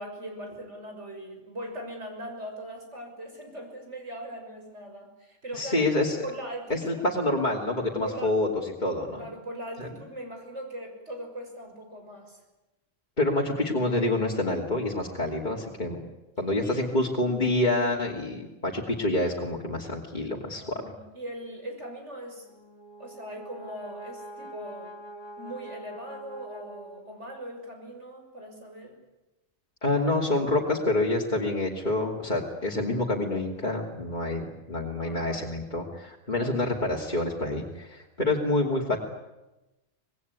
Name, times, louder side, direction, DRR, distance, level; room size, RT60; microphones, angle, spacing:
voice 1, 0.0-5.9 6.2-7.1 8.0-8.4 9.2-12.4 16.6-16.8 20.6-22.5 23.0-24.9 25.4-29.0 35.0-35.6 36.3-36.7, right 1 dB, 60° right, 3 dB, 6.8 m, -40 dB
voice 2, 5.5-6.2 6.7-8.5 8.8-9.2 9.8-9.9 13.2-16.0 16.4-20.8 29.8-39.0, left 2 dB, 35° left, -2 dB, 3.1 m, -27 dB
Brass instrument, 22.4-27.5, right 1 dB, 20° left, 2.3 m, -45 dB
26.5 x 20.0 x 9.6 m, 1.0 s
omnidirectional pair, 1.3 m